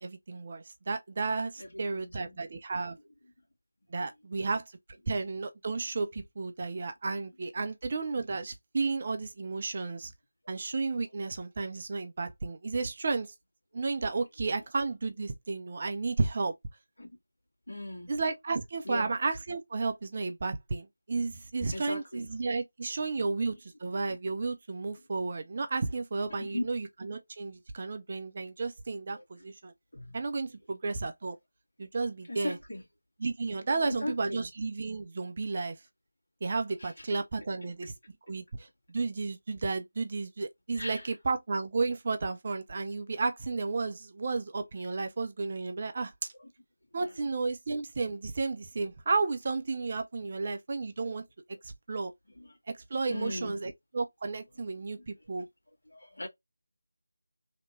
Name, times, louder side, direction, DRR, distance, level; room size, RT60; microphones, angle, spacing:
voice 1, 0.0-3.0 3.9-4.6 5.1-10.1 10.5-13.3 13.7-16.5 18.1-29.7 30.1-31.4 31.8-32.6 33.2-35.8 36.4-37.9 38.3-46.1 46.9-51.2 51.6-52.1 52.7-55.5, right 3 dB, 35° right, 0.5 m, -33 dB
voice 2, 1.6-2.4 3.2-3.3 4.0-4.1 10.4-10.6 13.7-13.8 17.0-17.2 17.7-18.2 18.8-19.1 21.7-22.3 23.1-23.2 26.4-26.6 29.1-29.5 29.9-30.2 32.3-32.8 33.7-34.5 36.8-37.1 40.7-41.2 46.0-46.1 46.4-46.5 46.9-47.2 52.3-52.6 53.1-53.6 55.0-55.1 55.3-55.4 55.9-56.3, left 1 dB, 60° left, 1.9 m, -39 dB
3.4 x 2.9 x 3.0 m
figure-of-eight pair, 165°, 0 cm